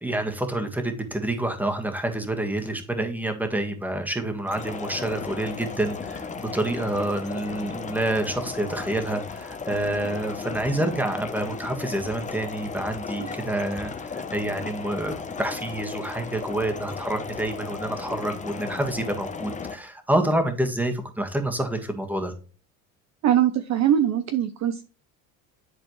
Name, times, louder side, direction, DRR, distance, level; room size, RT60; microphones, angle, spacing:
voice 1, 0.0-22.3, right 1 dB, 5° right, 1.6 m, -28 dB
sound 1, 4.5-19.7, left 5 dB, 15° left, 0.8 m, -35 dB
voice 2, 23.2-24.8, right 10 dB, 40° right, 0.6 m, -22 dB
10.5 x 4.2 x 3.1 m
supercardioid pair, 100°, 43 cm